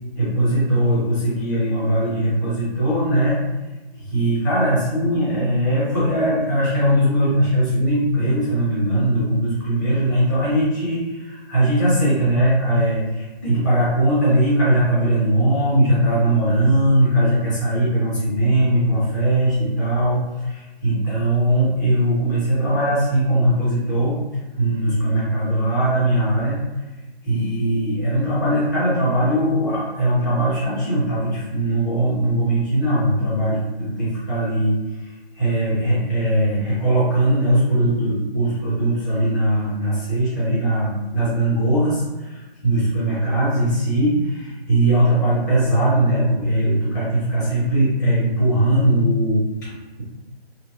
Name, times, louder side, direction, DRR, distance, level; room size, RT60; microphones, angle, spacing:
voice 1, 0.2-3.4 3.9-24.2 24.6-26.6 27.2-50.0, right 1 dB, 20° left, -10 dB, 0.7 m, -20 dB
2.6 x 2.2 x 2.6 m, 1.1 s
figure-of-eight pair, 145°, 32 cm